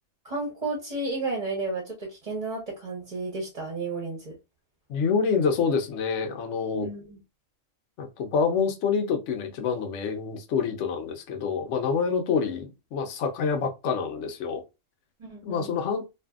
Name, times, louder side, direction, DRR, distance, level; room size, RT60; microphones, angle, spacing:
voice 1, 0.2-4.4 6.7-7.2 15.2-15.7, right 3 dB, 35° right, 0.9 m, -32 dB
voice 2, 4.9-6.9 8.0-14.6 15.4-16.1, left 5 dB, 70° left, 1.0 m, -27 dB
2.6 x 2.6 x 2.3 m
omnidirectional pair, 1.3 m